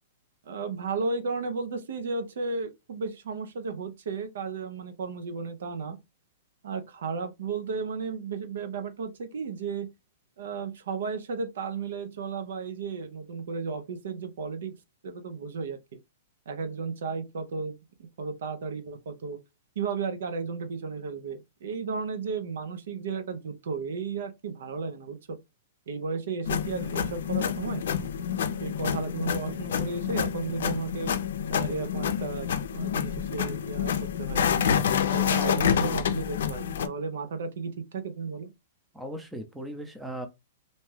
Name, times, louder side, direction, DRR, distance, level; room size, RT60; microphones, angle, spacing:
voice 1, 0.5-6.0 6.6-9.9 10.4-14.7 15.0-16.0 16.5-17.8 18.2-19.4 19.8-25.4 25.9-27.8 28.6-31.1 31.5-33.9 34.2-34.4 35.1-38.5, right 4 dB, 75° right, 0.6 m, -34 dB
Printer - Ink, 26.4-36.9, left 8 dB, 75° left, 0.4 m, -28 dB
voice 2, 35.3-35.9 38.9-40.3, right 1 dB, 5° right, 0.5 m, -38 dB
2.6 x 2.2 x 3.2 m
hypercardioid pair, 145°, 0 cm